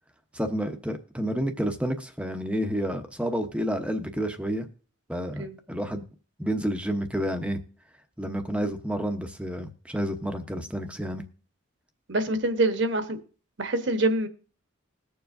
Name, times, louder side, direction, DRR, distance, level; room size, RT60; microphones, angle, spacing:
voice 1, 0.3-4.7 5.1-6.1 6.4-7.6 8.2-11.2, equal, 5° right, 6 dB, 0.8 m, -30 dB
voice 2, 12.1-13.2 13.6-14.3, right 2 dB, 55° right, 8 dB, 1.1 m, -25 dB
21.0 x 7.1 x 2.6 m, 0.39 s
head